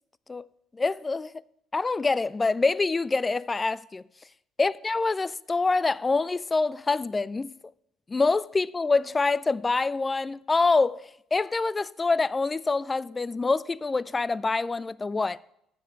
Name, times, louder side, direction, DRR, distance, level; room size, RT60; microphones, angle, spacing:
voice 1, 0.7-1.3 1.7-4.0 4.6-7.5 8.1-15.4, left 3 dB, 25° left, 0.3 m, -26 dB
7.8 x 6.9 x 7.2 m
hypercardioid pair, 60°, 0 cm